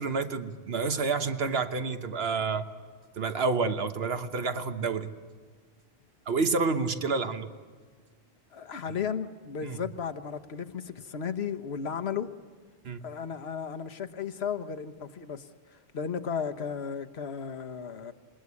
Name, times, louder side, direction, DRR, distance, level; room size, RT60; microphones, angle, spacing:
voice 1, 0.0-2.6 3.2-5.1 6.3-7.5 9.6-9.8 12.8-13.0, right 4 dB, 70° right, 9 dB, 1.3 m, -29 dB
voice 2, 8.5-12.3 13.0-18.1, left 7 dB, 75° left, 9 dB, 1.3 m, -35 dB
26.5 x 20.5 x 9.7 m, 1.5 s
omnidirectional pair, 1.1 m